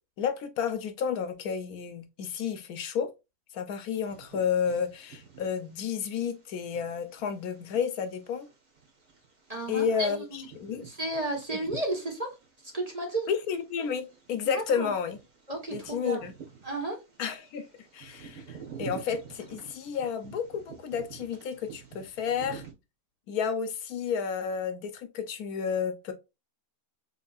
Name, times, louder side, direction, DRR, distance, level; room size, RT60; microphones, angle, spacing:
voice 1, 0.2-3.1 3.5-8.5 9.7-10.9 13.3-15.2 15.7-16.3 17.2-17.7 17.9-22.6 23.3-26.1, left 7 dB, 80° left, 1.2 m, -31 dB
Bird vocalization bird call bird song, 3.8-22.7, right 7 dB, 60° right, 2.0 m, -49 dB
voice 2, 9.5-10.4 10.7-12.3 12.7-13.3 14.5-14.9 15.5-16.2 16.6-17.0, right 2 dB, 25° right, 1.4 m, -33 dB
4.5 x 3.8 x 2.4 m
omnidirectional pair, 1.6 m